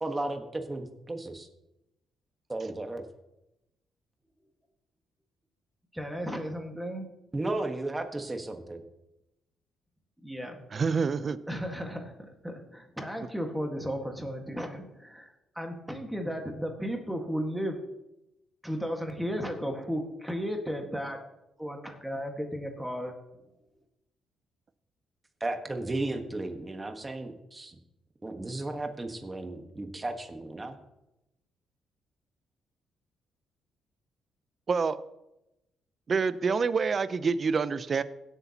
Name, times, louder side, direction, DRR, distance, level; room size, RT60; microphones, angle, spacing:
voice 1, 0.0-1.5 2.5-3.0 7.3-8.8 25.4-27.8 28.2-30.8, right 2 dB, 20° right, 5 dB, 1.4 m, -34 dB
voice 2, 5.9-7.1 10.2-10.6 11.5-15.3 15.6-17.8 18.6-21.2 21.6-23.1, equal, 5° right, 3 dB, 1.7 m, -34 dB
voice 3, 10.7-11.4 34.7-35.0 36.1-38.0, right 5 dB, 40° right, 14 dB, 0.6 m, -27 dB
17.0 x 8.2 x 2.9 m, 0.92 s
cardioid pair, 90°, 0 cm